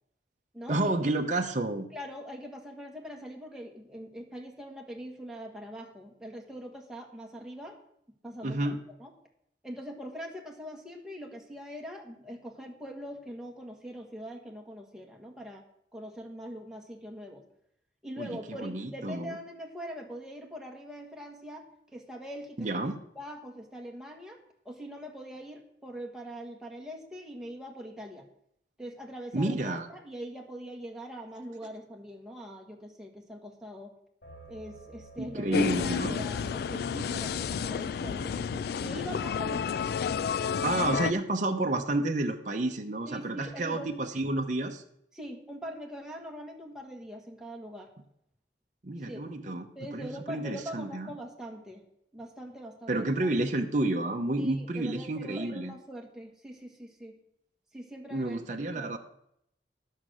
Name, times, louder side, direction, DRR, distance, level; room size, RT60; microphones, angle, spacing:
voice 1, 0.7-1.9 8.4-8.8 18.2-19.4 22.6-23.0 29.3-29.9 35.2-36.2 40.6-44.8 48.8-51.1 52.9-55.7 58.1-59.0, right 2 dB, 45° right, 3 dB, 0.8 m, -30 dB
voice 2, 1.9-7.7 8.2-8.7 9.0-9.1 9.6-15.6 15.9-17.4 18.0-21.7 21.9-22.7 23.1-24.4 24.6-28.3 28.8-33.9 34.5-39.9 40.7-40.9 43.1-43.9 45.1-47.9 49.0-49.2 49.7-51.8 52.1-53.1 54.4-57.1 57.7-59.0, equal, 5° right, 0 dB, 1.6 m, -42 dB
sound 1, 34.2-40.7, right 2 dB, 85° left, 3.6 m, -54 dB
sound 2, 35.5-41.1, left 6 dB, 60° left, 0.3 m, -31 dB
10.5 x 6.5 x 6.3 m, 0.72 s
head